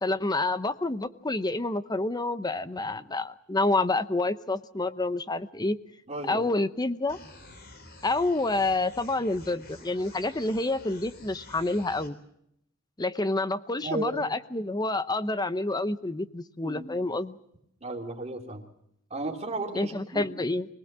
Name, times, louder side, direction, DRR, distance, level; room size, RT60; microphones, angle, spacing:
voice 1, 0.0-5.8 6.3-7.2 8.0-12.2 13.0-17.4 19.7-20.7, left 2 dB, 20° left, 12 dB, 0.8 m, -28 dB
voice 2, 6.1-6.4 13.8-14.3 16.6-16.9 17.8-18.6 19.1-20.2, right 2 dB, 35° right, 1 dB, 3.2 m, -34 dB
sound 1, 7.1-12.1, left 2 dB, 55° left, 3.8 m, -49 dB
24.5 x 19.0 x 7.5 m, 0.76 s
head